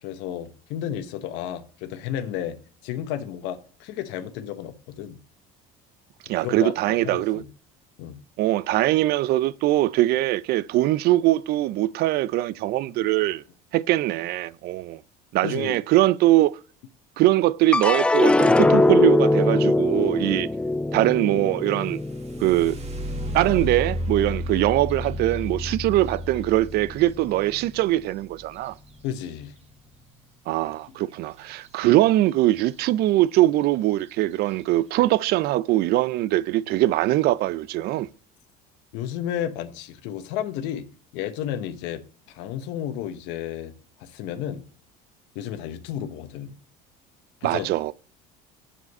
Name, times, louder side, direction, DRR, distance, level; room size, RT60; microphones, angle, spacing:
voice 1, 0.0-2.6 2.8-5.2 6.2-7.5 8.0-8.2 15.4-15.8 29.0-29.5 38.9-40.9 41.1-42.0 42.3-43.7 44.0-44.6 45.3-46.6 47.4-47.7, left 10 dB, 75° left, 1.0 m, -32 dB
voice 2, 6.3-7.4 8.4-13.4 13.7-15.0 15.3-16.6 17.2-20.5 20.9-22.0 22.4-22.8 23.3-28.7 30.5-38.1 47.4-47.9, right 16 dB, 60° right, 0.4 m, -22 dB
sound 1, 17.7-24.2 24.6-25.3, left 2 dB, 5° left, 0.3 m, -22 dB
sound 2, 21.7-29.6 31.6-31.8 32.2-32.8 33.4-33.5 34.0-34.3, equal, 35° right, 1.8 m, -33 dB
7.4 x 6.8 x 5.3 m
supercardioid pair, 100°, 19 cm